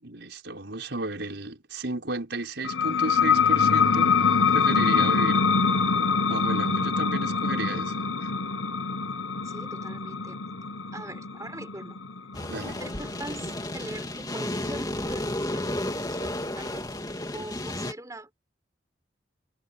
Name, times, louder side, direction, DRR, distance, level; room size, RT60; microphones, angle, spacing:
voice 1, 0.0-4.2 4.5-5.5 6.3-7.9 8.2-8.3 12.5-12.8, right 2 dB, 65° right, 5.5 m, -33 dB
sound 1, 2.6-13.9, left 5 dB, 85° left, 1.2 m, -24 dB
voice 2, 9.4-10.4 10.9-12.0 12.8-16.9 17.3-18.5, right 1 dB, 15° right, 4.5 m, -42 dB
sound 2, 12.3-17.9, left 1 dB, 20° left, 3.0 m, -32 dB
head